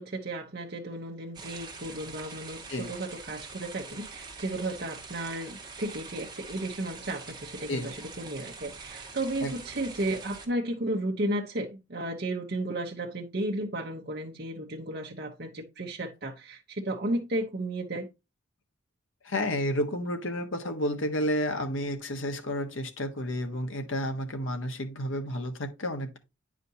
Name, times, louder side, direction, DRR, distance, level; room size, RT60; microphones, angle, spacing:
voice 1, 0.0-18.1, right 1 dB, 50° right, 0.9 m, -34 dB
sound 1, 1.3-10.5, right 4 dB, 20° right, 1.6 m, -44 dB
voice 2, 19.2-26.2, equal, 70° left, 1.3 m, -31 dB
9.5 x 5.0 x 2.8 m
head